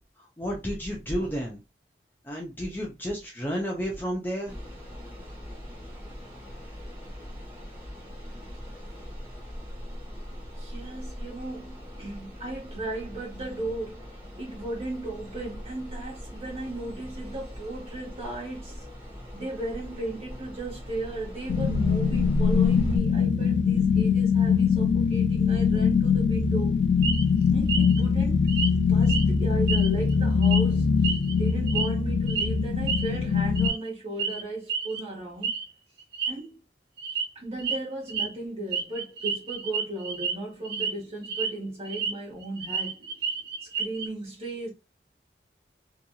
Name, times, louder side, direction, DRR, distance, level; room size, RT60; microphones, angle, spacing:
voice 1, 0.2-1.6 2.2-4.5, equal, 10° left, 0.5 m, -31 dB
sound 1, 4.5-23.0, equal, 10° right, 1.0 m, -38 dB
voice 2, 10.6-18.8 19.3-26.7 27.5-28.5 28.7-30.9 31.3-35.5 36.3-36.6 37.3-43.0 43.6-44.7, right 2 dB, 35° right, 1.5 m, -36 dB
sound 2, 21.5-33.7, left 6 dB, 85° left, 0.4 m, -23 dB
sound 3, 27.0-27.3 27.7-28.0 28.5-28.7 29.0-29.3 29.7-30.1 30.4-30.6 31.0-31.9 32.3-32.5 32.9-33.1 33.5-33.9 34.2-34.4 34.7-35.0 35.4-35.6 36.0-36.3 37.0-37.3 37.6-37.8 38.1-38.3 38.7-40.3 40.6-40.9 41.2-42.1 42.4-44.1, right 6 dB, 65° right, 0.5 m, -30 dB
2.9 x 2.6 x 2.2 m
head